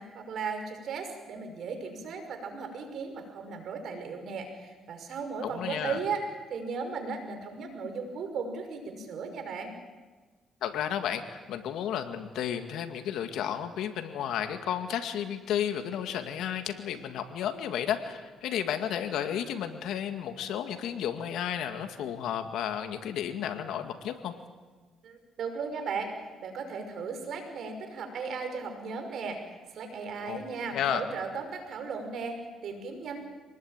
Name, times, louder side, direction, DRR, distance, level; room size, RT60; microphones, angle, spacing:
voice 1, 0.0-9.7 25.0-26.1 26.4-29.4 29.7-33.2, right 5 dB, 70° right, 6 dB, 5.7 m, -36 dB
voice 2, 5.4-6.0 10.6-24.3 30.2-30.4 30.7-31.0, left 9 dB, 85° left, 7 dB, 2.1 m, -32 dB
25.0 x 20.0 x 9.1 m, 1.3 s
cardioid pair, 90°, 0 cm